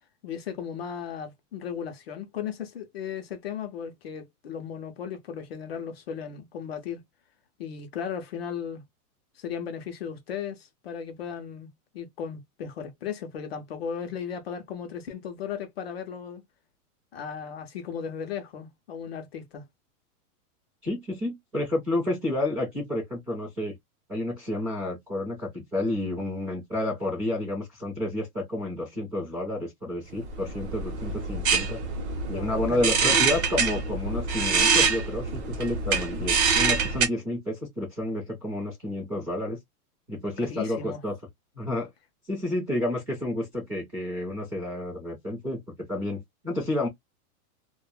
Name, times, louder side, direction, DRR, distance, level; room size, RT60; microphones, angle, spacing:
voice 1, 0.2-7.0 7.6-8.8 9.4-11.7 11.9-16.4 17.1-19.6 32.3-33.3 40.4-41.0, left 7 dB, 45° left, 0.5 m, -36 dB
voice 2, 20.8-23.8 24.1-31.8 32.3-39.6 40.1-41.2 41.5-41.9 42.3-46.9, left 1 dB, 10° right, 0.5 m, -30 dB
sound 1, 30.3-37.1, right 5 dB, 45° right, 0.7 m, -25 dB
2.2 x 2.0 x 3.0 m
supercardioid pair, 170°, 45 cm